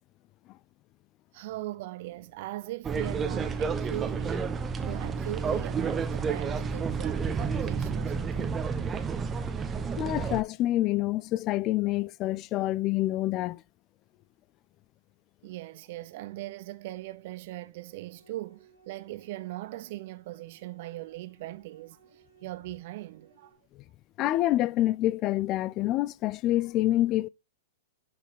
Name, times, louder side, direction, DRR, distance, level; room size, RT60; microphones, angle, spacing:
voice 1, 1.3-8.5 15.4-23.6, right 17 dB, 50° right, 0.8 m, -40 dB
sound 1, 2.8-10.4, right 5 dB, 20° right, 0.9 m, -30 dB
voice 2, 10.0-13.6 24.2-27.3, left 15 dB, 35° left, 0.4 m, -27 dB
sound 2, 17.8-23.5, right 6 dB, 85° right, 2.1 m, -62 dB
9.8 x 5.1 x 4.1 m
hypercardioid pair, 105°, 0 cm